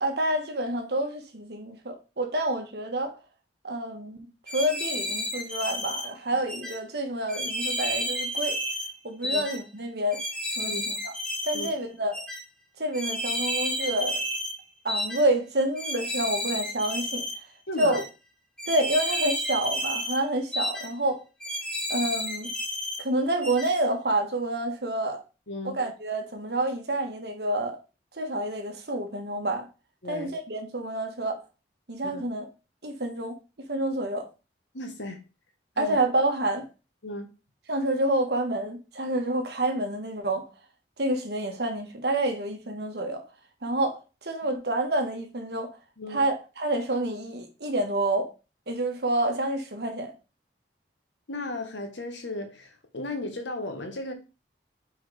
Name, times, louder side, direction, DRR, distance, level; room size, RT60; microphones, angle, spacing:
voice 1, 0.0-3.2 3.6-8.6 9.0-10.2 10.6-11.1 11.4-12.2 12.8-14.2 14.8-17.3 17.8-18.0 18.7-21.2 21.9-22.5 23.0-25.2 25.6-27.8 28.1-29.7 30.0-31.4 31.9-32.5 32.8-33.3 33.7-34.3 35.8-36.7 37.7-40.5 41.0-43.2 43.6-45.8 46.1-48.3 48.7-50.1, right 1 dB, 65° right, 1.3 m, -28 dB
sound 1, 4.5-6.1 6.5-6.7 7.3-8.9 9.2-9.6 10.1-11.7 12.1-12.4 12.9-14.5 14.9-15.2 15.8-17.4 17.8-18.0 18.6-20.2 20.5-20.9 21.4-23.0 23.4-23.7, equal, 5° left, 1.2 m, -31 dB
voice 2, 17.7-18.0 25.5-25.7 30.0-30.3 32.0-32.2 34.7-35.2 35.8-36.0 37.0-37.3 46.0-46.2 51.3-54.1, left 2 dB, 85° left, 1.4 m, -35 dB
4.7 x 4.4 x 4.9 m
head